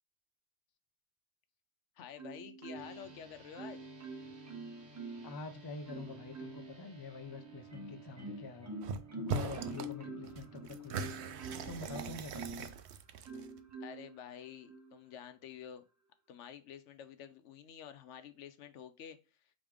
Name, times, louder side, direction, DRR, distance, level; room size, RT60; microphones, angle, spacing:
voice 1, 2.0-3.9 13.8-15.8 16.3-19.2, left 8 dB, 85° left, 1.0 m, -49 dB
Marimba xylophone, 2.2-3.1 3.6-5.4 5.9-6.8 7.3-12.7 13.2-14.1 14.7-14.9, right 2 dB, 20° right, 0.6 m, -46 dB
sound 1, 2.7-12.2, right 3 dB, 40° right, 1.0 m, -57 dB
voice 2, 5.2-8.8 9.1-11.2 11.7-12.6, left 3 dB, 30° left, 0.4 m, -46 dB
sound 2, 8.8-9.0 9.3-9.9 10.2-13.6, right 5 dB, 70° right, 0.8 m, -40 dB
5.1 x 3.0 x 3.4 m
omnidirectional pair, 1.2 m